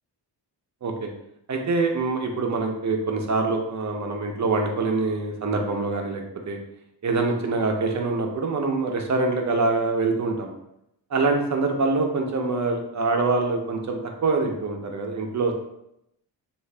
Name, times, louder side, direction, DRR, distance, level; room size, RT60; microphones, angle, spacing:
voice 1, 1.5-6.6 7.0-10.5 11.1-15.5, right 3 dB, 40° right, 2 dB, 0.7 m, -25 dB
3.7 x 2.5 x 3.3 m, 0.82 s
cardioid pair, 105°, 43 cm